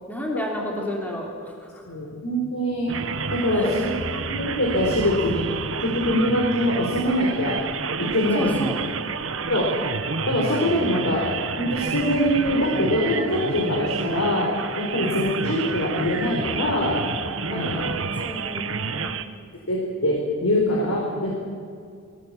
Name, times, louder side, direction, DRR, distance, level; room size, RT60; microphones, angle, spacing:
voice 1, 0.1-1.8 3.5-3.7 8.3-8.8 17.5-19.3, equal, 10° left, -1 dB, 3.5 m, -31 dB
voice 2, 1.9-2.9 3.3-3.9 4.3-5.5 5.8-7.6 8.0-8.5 9.5-9.7 10.3-11.2 11.6-14.5 14.8-17.0 17.5-17.8 19.7-21.4, left 1 dB, 80° left, -2 dB, 4.4 m, -23 dB
sound 1, 2.9-19.2, right 5 dB, 65° right, 1.2 m, -29 dB
21.0 x 19.0 x 8.7 m, 2.3 s
head